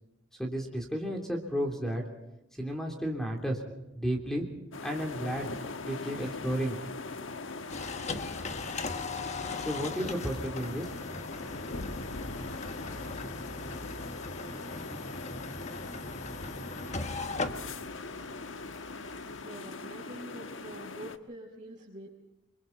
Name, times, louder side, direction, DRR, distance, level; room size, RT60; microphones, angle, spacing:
voice 1, 0.4-2.0 2.6-3.6 3.9-4.4 4.8-5.5 5.8-6.8 9.6-10.9, equal, ahead, 1 dB, 3.2 m, -32 dB
sound 1, 4.7-21.2, left 3 dB, 85° left, 1.3 m, -41 dB
sound 2, 7.7-19.4, left 3 dB, 35° left, 1.4 m, -39 dB
voice 2, 19.4-22.1, right 1 dB, 40° right, -5 dB, 5.3 m, -46 dB
30.0 x 23.5 x 4.1 m, 0.90 s
head